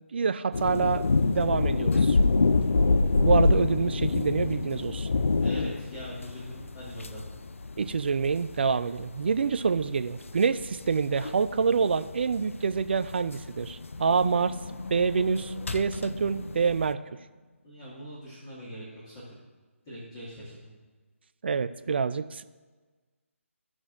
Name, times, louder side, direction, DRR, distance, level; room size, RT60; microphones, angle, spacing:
voice 1, 0.1-2.2 3.2-5.1 7.8-14.6 14.9-17.0 21.4-22.4, right 5 dB, 50° right, 12 dB, 0.4 m, -27 dB
sound 1, 0.5-16.9, left 3 dB, 70° left, 0.4 m, -27 dB
voice 2, 5.4-7.3 17.6-19.4 19.9-20.7, equal, 25° left, -10 dB, 2.0 m, -42 dB
Animal, 13.4-17.6, left 1 dB, 85° left, 0.8 m, -41 dB
14.5 x 6.1 x 2.5 m, 1.3 s
figure-of-eight pair, 150°, 7 cm